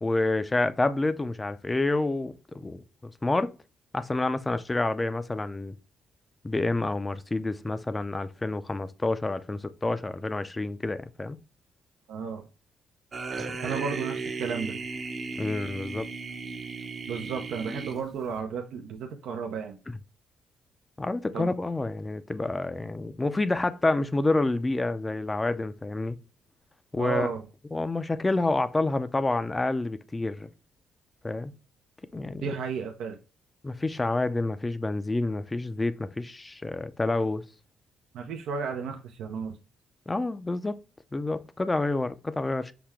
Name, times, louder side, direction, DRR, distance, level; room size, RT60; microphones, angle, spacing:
voice 1, 0.0-3.5 3.9-5.7 6.4-11.4 13.5-13.6 15.4-16.1 19.9-20.0 21.0-26.2 26.9-27.3 27.7-30.5 31.2-31.5 32.1-32.5 33.6-37.4 40.1-40.8 41.1-42.7, left 2 dB, 20° left, 0.4 m, -28 dB
voice 2, 12.1-12.4 13.6-14.8 17.1-19.8 21.3-21.5 27.0-27.4 32.4-33.2 38.1-39.6, right 6 dB, 80° right, 0.5 m, -33 dB
sound 1, 13.1-18.4, right 4 dB, 45° right, 0.7 m, -35 dB
5.9 x 2.2 x 3.4 m
cardioid pair, 90°, 0 cm